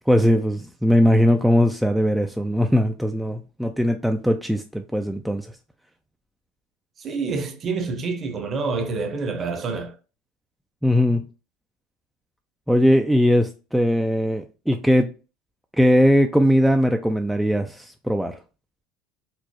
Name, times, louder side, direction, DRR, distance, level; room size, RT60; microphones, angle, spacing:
voice 1, 0.1-5.5 10.8-11.2 12.7-15.1 15.7-18.4, equal, ahead, 0.3 m, -20 dB
voice 2, 7.0-10.0, right 4 dB, 35° right, 0.8 m, -27 dB
4.5 x 2.0 x 2.8 m
hypercardioid pair, 95°, 0 cm